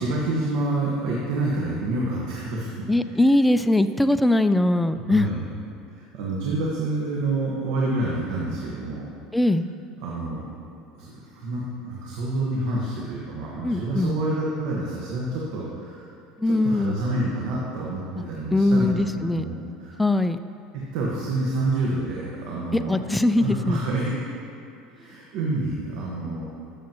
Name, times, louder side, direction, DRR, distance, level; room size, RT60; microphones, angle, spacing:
voice 1, 0.0-2.7 5.1-5.4 5.9-9.1 10.0-10.4 10.9-16.1 16.4-19.0 19.3-20.0 20.7-23.0 23.4-24.1 24.9-26.4, right 2 dB, 70° right, -4 dB, 1.4 m, -28 dB
voice 2, 2.9-5.3 9.3-9.7 13.6-14.1 16.4-17.0 18.2-18.3 18.5-20.4 22.9-23.8, left 1 dB, 5° left, 11 dB, 0.3 m, -21 dB
13.5 x 7.0 x 3.0 m, 2.5 s
supercardioid pair, 105°, 0 cm